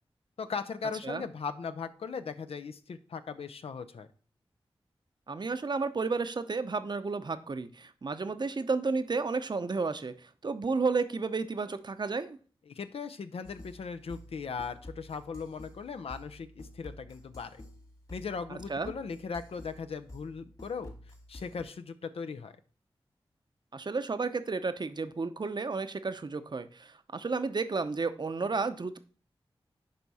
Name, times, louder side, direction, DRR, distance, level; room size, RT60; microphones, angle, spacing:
voice 1, 0.4-4.1 12.7-17.6 18.1-20.9 21.3-22.6, left 5 dB, 80° left, 10 dB, 0.5 m, -38 dB
voice 2, 5.3-12.4 18.7-18.9 23.7-29.0, right 4 dB, 50° right, 11 dB, 0.7 m, -32 dB
sound 1, 13.4-21.6, left 1 dB, 40° left, 1.9 m, -50 dB
10.5 x 3.5 x 4.1 m, 0.41 s
cardioid pair, 45°, 10 cm